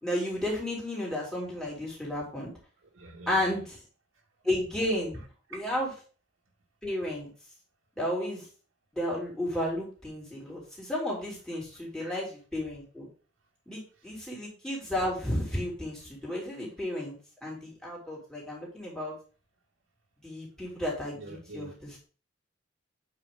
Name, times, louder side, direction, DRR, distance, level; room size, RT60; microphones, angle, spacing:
voice 1, 0.0-2.5 3.3-3.8 4.4-5.2 5.5-5.9 6.8-7.3 8.0-8.5 8.9-13.1 13.7-17.1 17.4-19.1 20.2-22.1, left 1 dB, 5° left, -4 dB, 3.1 m, -33 dB
voice 2, 2.9-3.7 5.5-5.7 12.0-12.2 21.1-21.7, right 2 dB, 90° right, -3 dB, 2.1 m, -46 dB
8.2 x 5.1 x 3.7 m, 0.38 s
head